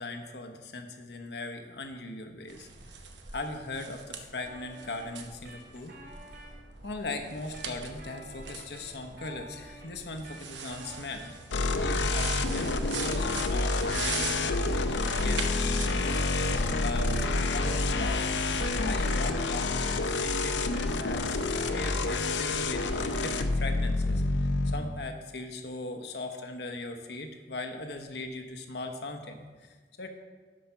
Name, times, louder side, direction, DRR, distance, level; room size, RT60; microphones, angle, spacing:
voice 1, 0.0-3.0 3.3-6.0 6.8-11.4 11.7-18.3 18.5-30.1, left 2 dB, 65° left, 4 dB, 0.9 m, -39 dB
sound 1, 2.5-19.3, right 5 dB, 80° right, 0.9 m, -42 dB
sound 2, 4.4-6.5 7.2-11.6 11.9-16.1 16.8-21.2 21.5-23.6, right 2 dB, 60° right, 2.6 m, -50 dB
sound 3, 11.5-24.7, left 3 dB, 80° left, 0.6 m, -28 dB
12.0 x 5.0 x 5.6 m, 1.4 s
head